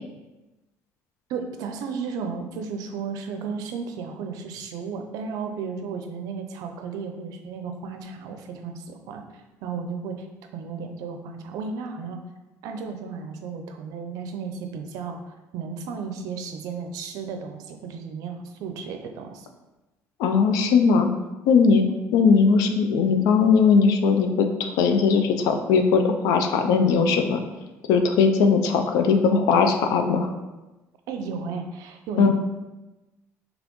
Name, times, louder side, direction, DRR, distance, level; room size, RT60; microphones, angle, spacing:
voice 1, 1.3-10.3 10.5-12.2 12.6-19.5 31.1-32.3, right 5 dB, 80° right, 5 dB, 0.5 m, -34 dB
voice 2, 20.2-21.1 21.5-21.9 22.1-27.4 27.9-30.3 32.2-32.3, left 5 dB, 85° left, 6 dB, 0.4 m, -19 dB
4.1 x 3.3 x 3.0 m, 1.1 s
cardioid pair, 130°, 6 cm